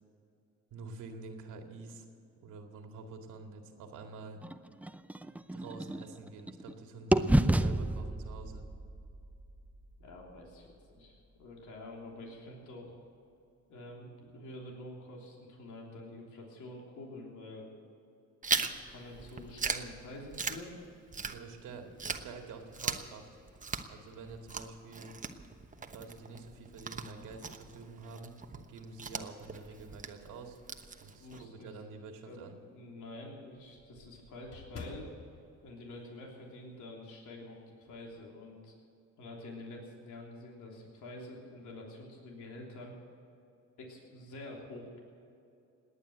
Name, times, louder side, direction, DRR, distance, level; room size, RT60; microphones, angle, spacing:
voice 1, 0.7-2.1 2.4-4.4 5.2-8.6 21.3-23.3 23.9-25.1 25.9-30.6 31.0-32.6, right 3 dB, 90° right, 3 dB, 2.2 m, -47 dB
sound 1, 4.4-6.7 7.1-11.1, right 1 dB, 5° right, 0.5 m, -32 dB
voice 2, 10.0-13.0 13.7-17.7 18.5-20.8 31.0-31.7 32.3-35.1 35.6-38.7 39.2-42.9 43.8-45.0, left 1 dB, 75° left, -1 dB, 3.4 m, -47 dB
Chewing mastication, 18.4-21.7 22.0-31.4, right 4 dB, 25° right, 1.1 m, -39 dB
sound 2, 24.2-25.5 26.1-26.2 27.6-28.1 28.6-31.3 31.7-31.8 32.2-32.3 32.6-32.7 32.9-36.7 37.0-37.2 37.5-38.1, left 3 dB, 55° left, 3.2 m, -53 dB
18.5 x 9.9 x 8.0 m, 2.6 s
cardioid pair, 90°, 30 cm